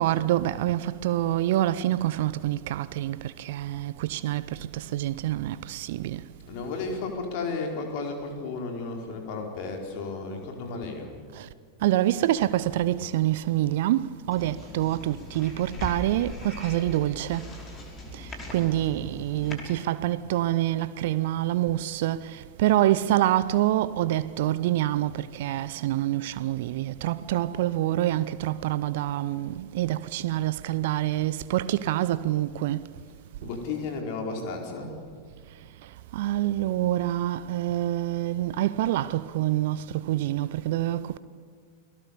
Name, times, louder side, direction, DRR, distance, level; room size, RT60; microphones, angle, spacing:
voice 1, 0.0-6.2 11.4-11.5 11.8-17.5 18.1-32.9 36.1-41.2, right 14 dB, 55° right, 0.7 m, -26 dB
voice 2, 6.4-11.1 33.4-35.0, left 4 dB, 45° left, 4.8 m, -33 dB
sound 1, 14.3-19.6, left 1 dB, 25° left, 5.6 m, -40 dB
29.5 x 19.5 x 6.9 m
figure-of-eight pair, 90°, 0 cm